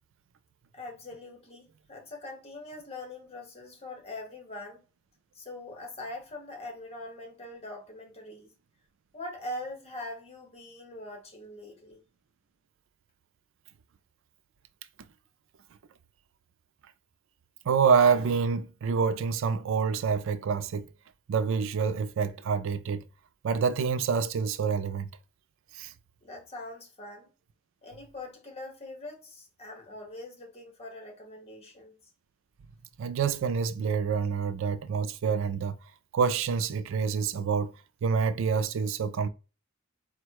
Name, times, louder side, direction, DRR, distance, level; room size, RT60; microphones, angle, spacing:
voice 1, 0.7-4.8 5.3-8.5 9.1-12.0 26.2-27.3 27.8-32.0, left 1 dB, 30° left, 1.3 m, -42 dB
voice 2, 17.7-20.9 21.3-23.0 23.4-25.1 25.7-25.9 33.0-35.8 36.1-37.7 38.0-39.3, right 6 dB, 65° right, 0.4 m, -27 dB
4.2 x 2.2 x 4.6 m
head